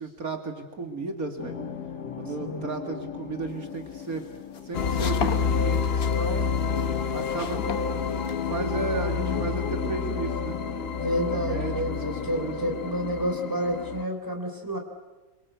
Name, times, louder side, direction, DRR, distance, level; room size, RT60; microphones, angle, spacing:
voice 1, 0.0-1.6 2.2-4.2 4.6-6.5 7.1-8.1 8.5-10.6 11.3-11.8 12.1-12.6, right 3 dB, 65° right, 4 dB, 2.8 m, -34 dB
sound 1, 1.4-14.0, left 6 dB, 90° left, 2.1 m, -39 dB
sound 2, 3.6-8.7, left 6 dB, 70° left, 1.8 m, -37 dB
sound 3, 4.7-14.0, left 6 dB, 45° left, 1.1 m, -28 dB
voice 2, 11.0-14.8, equal, 10° right, 4 dB, 3.7 m, -29 dB
27.0 x 24.5 x 8.3 m, 1.2 s
omnidirectional pair, 1.6 m